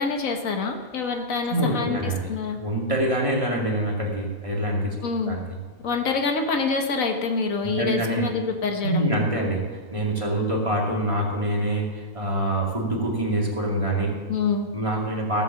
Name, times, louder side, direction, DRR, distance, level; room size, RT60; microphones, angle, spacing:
voice 1, 0.0-2.6 5.0-5.4 5.8-9.2 14.3-14.7, left 4 dB, 85° left, 4 dB, 1.6 m, -26 dB
voice 2, 1.4-2.3 2.6-5.4 7.6-8.3 8.8-14.1 14.7-15.4, right 1 dB, 25° right, -2 dB, 2.3 m, -25 dB
15.0 x 7.1 x 7.1 m, 1.5 s
omnidirectional pair, 1.4 m